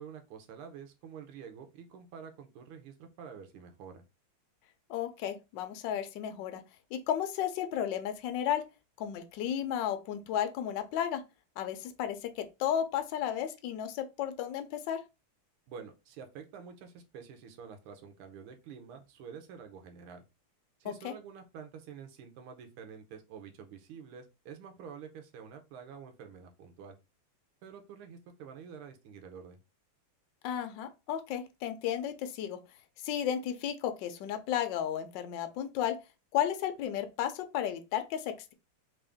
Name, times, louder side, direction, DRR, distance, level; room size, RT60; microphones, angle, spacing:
voice 1, 0.0-4.0 15.7-20.2 20.8-27.0 27.6-29.6, right 7 dB, 80° right, 1.6 m, -48 dB
voice 2, 4.9-6.6 6.9-8.6 9.0-11.2 11.6-15.0 20.8-21.1 30.4-32.6 33.0-35.9 36.3-38.5, left 10 dB, 70° left, 1.1 m, -33 dB
3.7 x 2.6 x 3.4 m
omnidirectional pair, 2.4 m